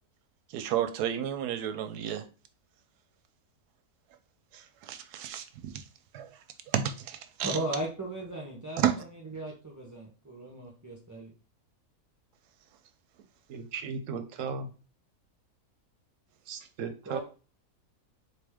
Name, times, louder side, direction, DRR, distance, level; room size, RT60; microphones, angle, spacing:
voice 1, 0.5-2.2 4.5-5.7 6.1-6.3 6.7-7.6 8.8-8.9, right 10 dB, 90° right, 1.1 m, -31 dB
voice 2, 7.4-11.3 17.1-17.2, right 1 dB, 25° right, 0.4 m, -37 dB
voice 3, 13.5-14.7 16.5-17.2, right 5 dB, 65° right, 0.9 m, -36 dB
3.9 x 3.4 x 3.4 m
omnidirectional pair, 1.6 m